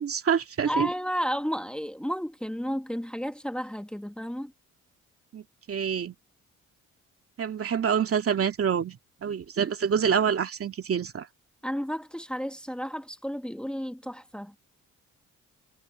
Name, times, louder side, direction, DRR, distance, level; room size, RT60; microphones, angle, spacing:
voice 1, 0.0-0.9 5.3-6.1 7.4-11.3, right 7 dB, 50° right, 2.4 m, -27 dB
voice 2, 0.7-4.5 11.6-14.5, equal, 5° left, 1.7 m, -32 dB
cardioid pair, 90°, 30 cm